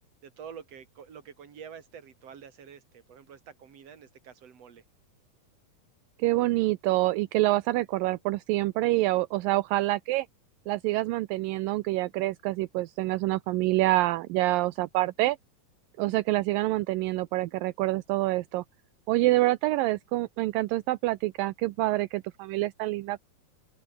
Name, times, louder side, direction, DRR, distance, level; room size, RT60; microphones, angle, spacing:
voice 1, 0.2-4.8 19.2-19.5, right 7 dB, 45° right, 3.7 m, -48 dB
voice 2, 6.2-10.3 10.7-15.4 16.0-18.6 19.1-23.2, right 18 dB, 80° right, 2.4 m, -26 dB
omnidirectional pair, 4.2 m